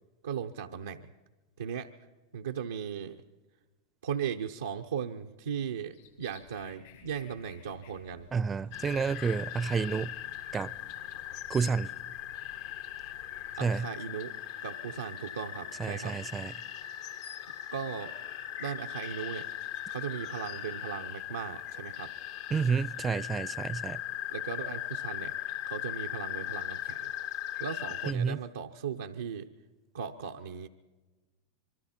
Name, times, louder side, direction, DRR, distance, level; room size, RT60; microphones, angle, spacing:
voice 1, 0.2-1.1 1.6-1.9 2.3-3.2 4.0-8.3 13.6-14.3 14.6-16.2 17.7-18.1 18.6-19.5 19.9-22.1 24.3-25.4 25.7-27.1 27.6-29.5 29.9-30.7, right 7 dB, 85° right, 0.8 m, -37 dB
sound 1, 5.9-13.6, left 8 dB, 80° left, 6.9 m, -57 dB
voice 2, 8.3-10.1 10.5-10.7 11.5-11.9 13.6-13.9 15.8-16.5 22.5-24.0 28.1-28.4, right 5 dB, 25° right, 0.5 m, -30 dB
sound 2, 8.7-28.1, left 12 dB, 60° left, 0.9 m, -39 dB
25.5 x 23.0 x 4.4 m
hypercardioid pair, 100°, 0 cm